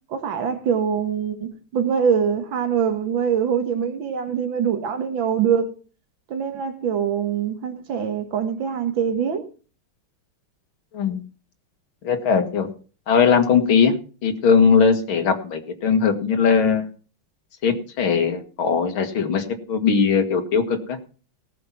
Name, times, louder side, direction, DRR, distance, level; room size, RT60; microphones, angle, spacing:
voice 1, 0.1-5.7 6.3-9.4, right 7 dB, 70° right, 2.4 m, -23 dB
voice 2, 12.0-12.7 13.1-14.0 14.2-16.9 17.6-21.0, left 6 dB, 80° left, 2.6 m, -19 dB
18.5 x 6.8 x 5.8 m
omnidirectional pair, 2.2 m